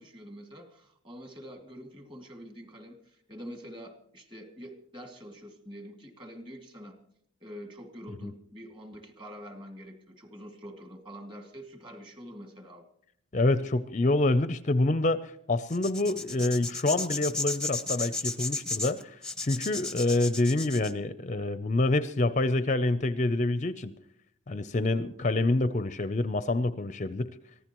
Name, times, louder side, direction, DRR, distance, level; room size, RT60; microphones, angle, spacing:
voice 1, 0.0-7.0 7.4-12.8, equal, 25° right, 5 dB, 2.5 m, -46 dB
voice 2, 13.3-23.9 24.5-27.3, left 2 dB, 35° left, 13 dB, 0.5 m, -27 dB
sound 1, 15.7-20.9, left 3 dB, 5° left, 0.8 m, -34 dB
24.5 x 15.5 x 3.0 m, 0.69 s
head